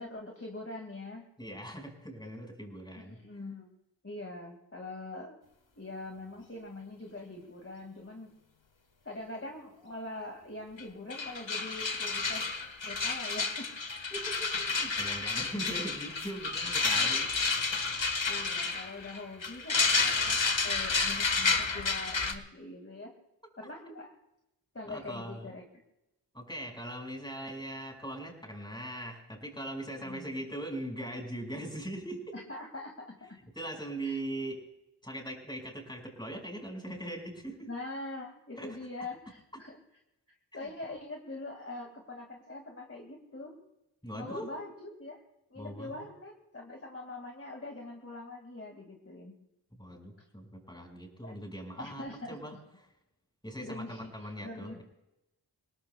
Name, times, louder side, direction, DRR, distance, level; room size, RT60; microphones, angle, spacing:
voice 1, 0.0-1.3 3.0-3.7 4.0-5.4 5.8-8.3 9.0-12.5 12.9-13.7 18.2-23.1 23.6-24.1 24.7-25.6 30.0-30.3 32.3-33.4 34.0-34.2 37.7-39.8 40.5-43.6 44.1-45.2 45.5-49.4 51.2-51.4 51.8-52.6 53.6-54.8, left 2 dB, 30° left, 2 dB, 2.0 m, -43 dB
voice 2, 1.4-3.2 14.1-17.3 24.8-25.5 26.3-32.3 33.5-34.6 35.0-37.7 38.6-38.7 40.6-40.7 44.0-44.5 45.6-45.9 49.7-52.5 53.4-54.8, right 1 dB, 10° left, 2 dB, 5.0 m, -40 dB
sound 1, 10.8-10.9 11.1-22.3, left 4 dB, 80° left, 1.5 m, -30 dB
29.0 x 18.0 x 2.2 m, 0.90 s
wide cardioid pair, 45°, 45 cm